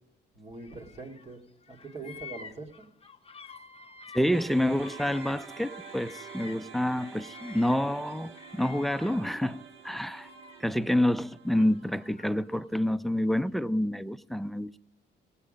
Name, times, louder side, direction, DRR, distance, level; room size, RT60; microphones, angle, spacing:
voice 1, 0.3-1.4 1.7-2.7, right 3 dB, 35° right, 2.2 m, -42 dB
Bird vocalization bird call bird song, 0.6-1.3 1.6-6.7 7.0-9.4 9.8-10.8 11.5-12.6, left 6 dB, 30° left, 0.8 m, -50 dB
voice 2, 4.1-10.3 10.6-14.8, left 1 dB, ahead, 0.4 m, -28 dB
sound 1, 4.3-12.6, right 7 dB, 85° right, 1.0 m, -48 dB
17.0 x 8.3 x 5.2 m
cardioid pair, 90°, 20 cm